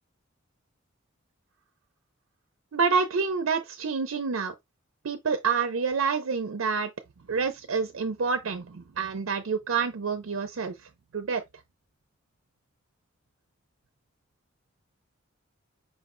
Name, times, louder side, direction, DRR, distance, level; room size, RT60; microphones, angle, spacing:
voice 1, 2.7-4.5 5.0-6.9 7.3-11.4, right 5 dB, 85° right, 0.5 m, -28 dB
5.1 x 2.1 x 3.7 m
head